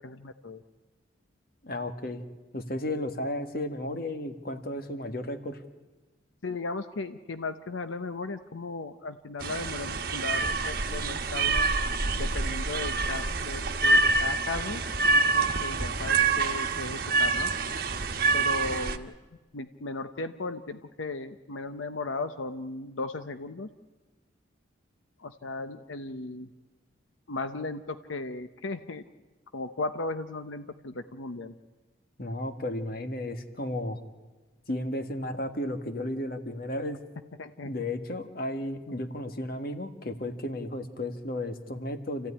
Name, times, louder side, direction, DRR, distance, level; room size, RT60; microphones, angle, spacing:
voice 1, 0.0-0.6 6.4-11.7 12.2-17.5 18.3-19.1 19.5-23.7 25.2-26.5 27.3-29.0 29.5-31.5 37.4-37.7 38.9-39.0, left 3 dB, 85° left, 10 dB, 0.8 m, -36 dB
voice 2, 1.6-2.2 2.5-5.6 32.2-34.0 34.7-37.0 37.6-42.3, left 1 dB, 50° left, 8 dB, 1.7 m, -33 dB
sound 1, 9.4-19.0, right 3 dB, 50° right, 1.3 m, -26 dB
28.5 x 15.0 x 9.9 m, 1.2 s
head